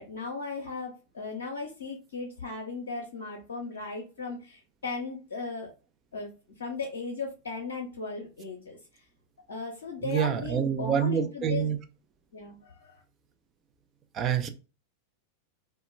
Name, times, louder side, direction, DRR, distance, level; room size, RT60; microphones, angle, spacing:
voice 1, 0.0-5.7 6.1-6.3 6.6-8.8 9.5-11.7 12.3-13.0, left 4 dB, 65° left, 1 dB, 0.5 m, -37 dB
voice 2, 10.0-11.8 14.1-14.5, right 8 dB, 30° right, 8 dB, 0.4 m, -27 dB
2.2 x 2.1 x 3.1 m, 0.33 s
figure-of-eight pair, 90°, 0 cm